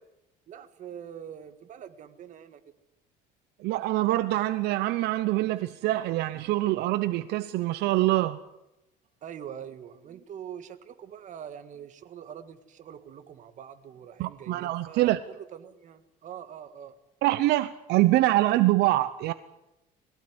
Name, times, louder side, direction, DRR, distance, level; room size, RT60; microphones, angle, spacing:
voice 1, 0.5-2.6 9.2-17.0, right 9 dB, 45° right, 1.8 m, -44 dB
voice 2, 3.6-8.4 14.2-15.2 17.2-19.3, right 16 dB, 70° right, 0.8 m, -25 dB
21.5 x 17.0 x 9.7 m
cardioid pair, 140°, 17 cm